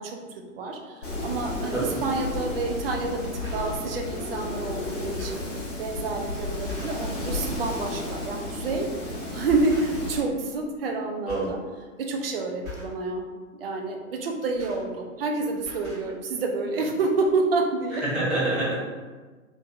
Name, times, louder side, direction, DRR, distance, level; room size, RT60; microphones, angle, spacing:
voice 1, 0.0-5.4 5.8-8.9 9.3-11.6 12.0-13.2 13.6-18.0, right 3 dB, 45° right, 2 dB, 0.4 m, -28 dB
Wind, 1.0-10.2, left 2 dB, 60° left, 1.1 m, -33 dB
sound 1, 3.4-3.9 4.6-4.7 5.0-5.6 6.2-6.3 6.7-7.1 7.5-7.6 8.8-9.0 9.5-10.2 10.5-11.0 11.3-11.6 11.9-12.2 12.6-13.0 14.2-15.3 15.6-16.1 16.9-17.0 17.2-17.3, left 4 dB, 20° left, 1.1 m, -42 dB
voice 2, 11.3-11.6 17.9-18.8, right 2 dB, ahead, -13 dB, 0.8 m, -26 dB
3.0 x 2.5 x 2.4 m, 1.4 s
figure-of-eight pair, 110°, 42 cm